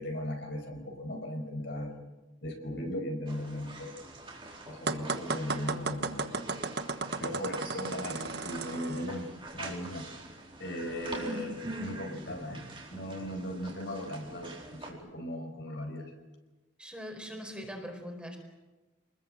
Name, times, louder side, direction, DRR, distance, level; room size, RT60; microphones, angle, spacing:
voice 1, 0.0-1.9 2.4-3.9 4.7-6.4 7.2-9.3 9.5-10.1 10.6-16.1, left 1 dB, 55° left, 3 dB, 5.2 m, -37 dB
sound 1, 3.3-14.9, right 2 dB, 25° right, 4.3 m, -44 dB
sound 2, 4.9-9.1, right 3 dB, 55° right, 1.3 m, -34 dB
voice 2, 16.8-18.4, equal, 5° right, 2 dB, 4.6 m, -41 dB
29.0 x 21.0 x 8.0 m, 1.2 s
head